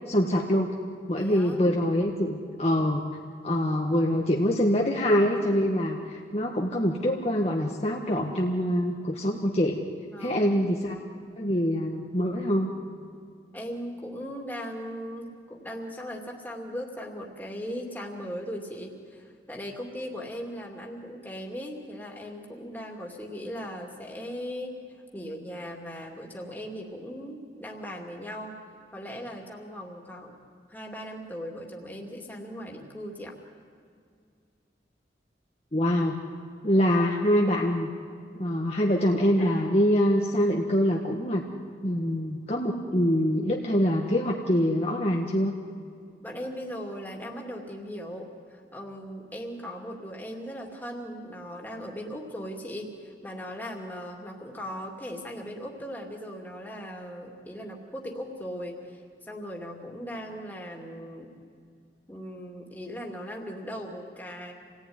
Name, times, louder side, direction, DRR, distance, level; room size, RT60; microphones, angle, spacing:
voice 1, 0.1-0.7 1.1-3.0 3.4-9.8 10.2-11.0 11.4-12.7 35.7-36.2 36.6-37.9 38.4-41.4 41.8-45.5, equal, 35° left, -1 dB, 1.4 m, -24 dB
voice 2, 1.1-1.7 10.1-10.6 13.5-24.8 25.1-28.6 28.9-30.4 30.7-33.4 46.2-61.3 62.1-64.5, equal, 10° left, 0 dB, 2.7 m, -38 dB
28.0 x 18.5 x 9.7 m, 2.3 s
head